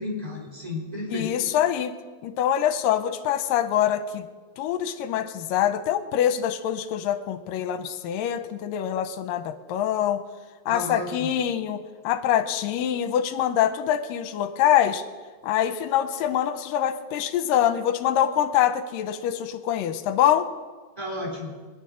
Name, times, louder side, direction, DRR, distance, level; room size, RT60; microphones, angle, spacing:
voice 1, 0.0-1.3 10.7-11.3 21.0-21.5, left 1 dB, 5° right, -1 dB, 2.9 m, -32 dB
voice 2, 1.1-2.0 2.2-4.3 4.6-10.2 10.7-15.0 15.4-20.5, left 10 dB, 75° left, 10 dB, 2.3 m, -24 dB
21.0 x 10.0 x 6.3 m, 1.4 s
omnidirectional pair, 4.4 m